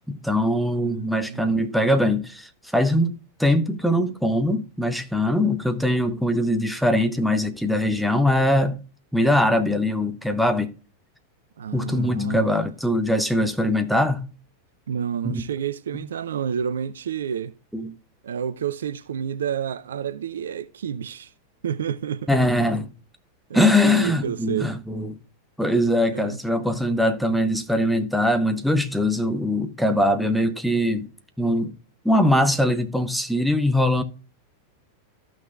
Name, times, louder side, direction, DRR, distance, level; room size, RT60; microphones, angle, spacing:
voice 1, 0.1-3.1 3.4-8.8 9.1-10.7 11.7-14.3 15.2-15.4 17.7-17.9 22.3-22.9 23.5-25.2 25.6-31.1 31.4-31.8 32.0-34.0, left 1 dB, ahead, 0.9 m, -22 dB
voice 2, 0.8-1.5 11.6-12.6 14.9-17.6 18.2-21.3 21.6-22.3 23.5-24.7 26.1-26.4, right 8 dB, 65° right, 0.5 m, -29 dB
14.0 x 6.1 x 2.4 m
figure-of-eight pair, 90°, 0 cm